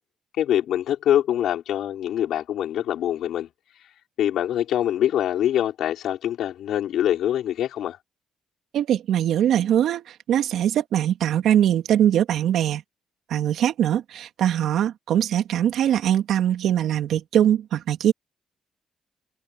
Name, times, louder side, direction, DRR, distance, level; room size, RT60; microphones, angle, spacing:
voice 1, 0.4-3.5 4.2-8.0, left 11 dB, 75° left, 5.6 m, -24 dB
voice 2, 8.7-10.0 10.3-12.8 13.3-18.1, right 10 dB, 75° right, 3.2 m, -21 dB
cardioid pair, 90°, 0 cm